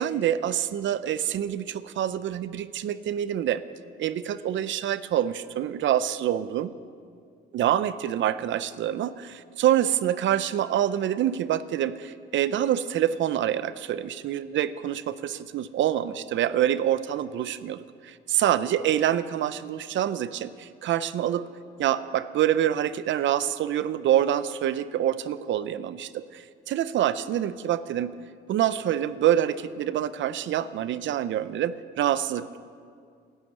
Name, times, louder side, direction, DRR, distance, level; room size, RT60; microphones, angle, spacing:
voice 1, 0.0-3.6 4.0-6.7 7.5-21.5 21.8-28.2 28.5-32.6, right 11 dB, 70° right, 14 dB, 0.6 m, -26 dB
13.0 x 12.0 x 9.2 m, 2.2 s
cardioid pair, 90°, 20 cm